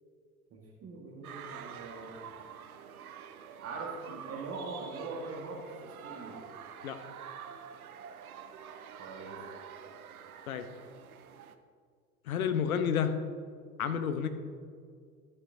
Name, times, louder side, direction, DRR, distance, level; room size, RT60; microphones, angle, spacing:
voice 1, 0.5-2.2 3.6-6.4 9.0-9.4, right 3 dB, 30° right, -1 dB, 1.7 m, -42 dB
sound 1, 1.2-11.6, right 8 dB, 75° right, 0.7 m, -47 dB
voice 2, 12.3-13.1 13.8-14.3, left 7 dB, 70° left, 9 dB, 0.9 m, -30 dB
13.0 x 8.1 x 2.7 m, 2.1 s
figure-of-eight pair, 75°, 44 cm